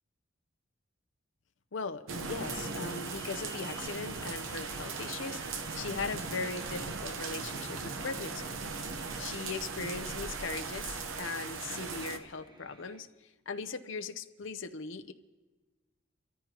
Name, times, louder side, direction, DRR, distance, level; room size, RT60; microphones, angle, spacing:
voice 1, 1.7-5.4 5.7-8.5 9.2-13.1 13.5-15.1, left 4 dB, 70° left, 8 dB, 0.7 m, -39 dB
sound 1, 2.1-12.2, right 4 dB, 85° right, 1.0 m, -38 dB
sound 2, 2.4-13.0, right 1 dB, 20° right, 1.1 m, -54 dB
27.0 x 14.0 x 2.9 m, 1.2 s
head